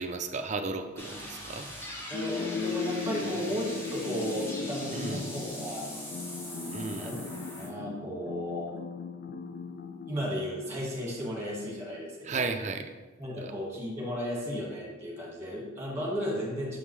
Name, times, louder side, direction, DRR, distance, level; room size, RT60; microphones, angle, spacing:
voice 1, 0.0-1.7 4.9-5.3 6.7-7.1 12.2-12.9 13.4-13.5, right 4 dB, 35° right, 6 dB, 0.4 m, -34 dB
sound 1, 1.0-7.7, left 1 dB, 10° left, 0.8 m, -41 dB
sound 2, 2.1-10.9, left 4 dB, 45° left, 0.4 m, -38 dB
voice 2, 2.1-5.9 6.9-7.2 7.6-8.8 10.1-12.5 13.2-16.8, equal, 15° right, -4 dB, 1.7 m, -34 dB
6.0 x 5.4 x 3.2 m, 1.2 s
head